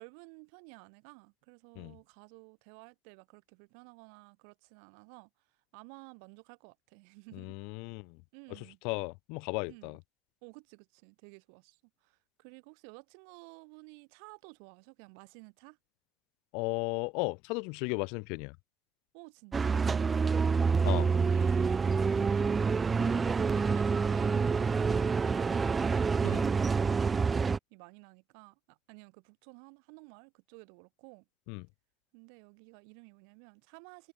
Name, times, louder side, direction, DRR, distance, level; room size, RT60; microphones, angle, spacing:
voice 1, 0.0-5.3 5.7-7.6 8.3-8.8 9.7-9.9 10.4-15.8 19.1-20.7 21.1-27.3 27.7-31.2 32.1-34.1, right 40 dB or more, 75° right, 3.6 m, -53 dB
voice 2, 7.3-8.2 8.5-8.6 8.8-10.0 16.5-18.6 20.8-21.1 26.2-26.4 31.5-31.7, left 34 dB, 70° left, 0.5 m, -35 dB
sound 1, 19.5-27.6, right 5 dB, 15° right, 0.3 m, -27 dB
cardioid pair, 160°, 0 cm